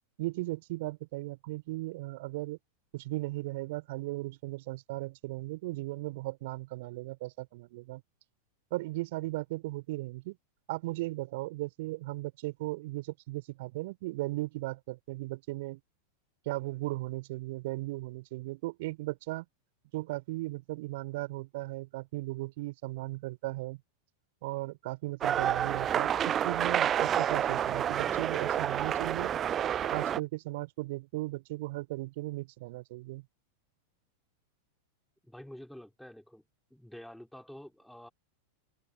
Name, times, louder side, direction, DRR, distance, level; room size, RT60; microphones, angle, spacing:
voice 1, 0.2-2.6 2.9-8.0 8.7-10.4 10.7-15.8 16.5-19.5 19.9-23.8 24.4-29.3 29.8-33.3, right 20 dB, 50° right, 3.5 m, -37 dB
sound 1, 25.2-30.2, right 9 dB, 25° right, 0.4 m, -29 dB
voice 2, 35.2-36.4 36.7-38.1, equal, ahead, 3.6 m, -48 dB
figure-of-eight pair, 90°, 0 cm